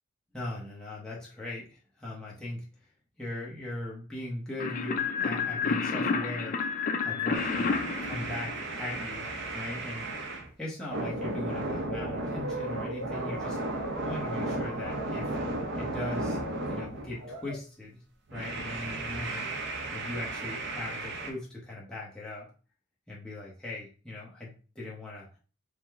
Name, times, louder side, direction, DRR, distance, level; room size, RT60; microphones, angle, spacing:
voice 1, 0.3-2.7 3.2-6.6 7.0-7.7 8.0-10.1 10.6-13.6 14.0-15.4 15.8-16.4 16.7-18.0 18.3-19.5 19.9-22.5 23.1-25.3, left 1 dB, 5° left, -6 dB, 0.9 m, -39 dB
sound 1, 4.6-9.0, left 5 dB, 40° left, 0.4 m, -30 dB
sound 2, 7.3-10.5 10.9-17.6 18.3-21.3, right 2 dB, 55° right, 0.7 m, -34 dB
4.9 x 2.2 x 3.5 m, 0.37 s
head